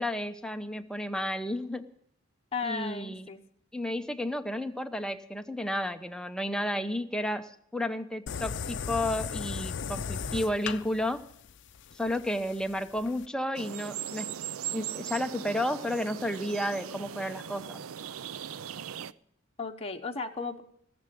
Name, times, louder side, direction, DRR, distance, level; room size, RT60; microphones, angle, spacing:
voice 1, 0.0-1.9 2.6-3.3 3.7-11.3 11.9-14.4 14.7-17.8, left 1 dB, 5° left, 7 dB, 0.8 m, -32 dB
voice 2, 2.5-3.4 19.6-20.6, left 4 dB, 30° left, 2 dB, 1.0 m, -35 dB
sound 1, 8.3-13.3, left 6 dB, 60° left, 0.6 m, -37 dB
sound 2, 13.6-19.1, right 9 dB, 85° right, 0.5 m, -39 dB
17.5 x 7.0 x 9.9 m, 0.68 s
head